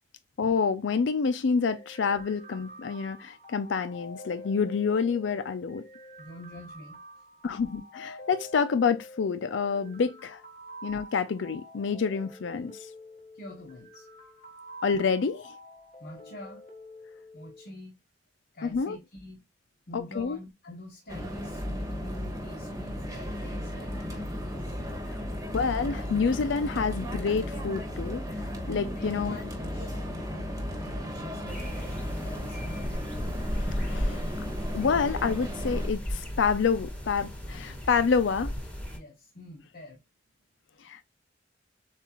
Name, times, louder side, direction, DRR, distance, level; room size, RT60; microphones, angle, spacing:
voice 1, 0.4-5.8 7.4-10.4 10.8-12.9 14.8-15.6 18.6-19.0 19.9-20.4 25.5-28.2 28.7-29.4 33.6-34.3 34.7-38.5 40.8-41.0, left 5 dB, 70° left, 0.4 m, -28 dB
sound 1, 1.7-17.7, equal, 35° left, 2.0 m, -48 dB
voice 2, 6.2-7.0 13.3-14.1 16.0-16.6 17.3-17.9 18.5-19.4 19.9-24.8 28.9-33.2 38.9-40.0, left 1 dB, 55° left, 1.0 m, -46 dB
sound 2, 21.1-35.9, equal, 15° right, 1.3 m, -35 dB
sound 3, 31.5-39.0, equal, 5° left, 1.6 m, -35 dB
7.2 x 2.4 x 3.0 m
head